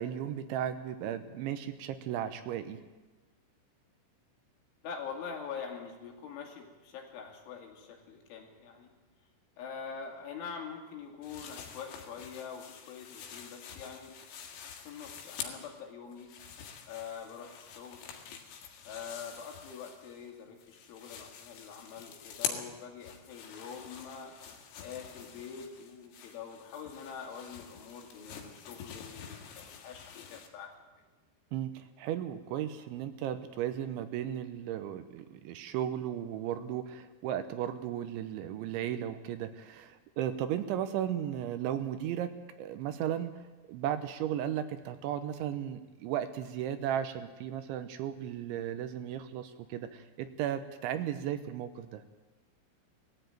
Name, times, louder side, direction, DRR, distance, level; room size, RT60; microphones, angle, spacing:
voice 1, 0.0-2.8 31.5-42.3 42.6-43.3 43.7-52.0, right 10 dB, 75° right, 10 dB, 3.0 m, -35 dB
voice 2, 4.8-8.9 9.6-14.1 14.9-16.3 16.9-18.0 18.8-30.7, left 6 dB, 70° left, 2 dB, 4.9 m, -44 dB
sound 1, 11.2-15.8 16.1-20.3 20.6-30.5, left 7 dB, 90° left, 4.6 m, -46 dB
19.5 x 14.5 x 9.1 m, 1.2 s
omnidirectional pair, 5.8 m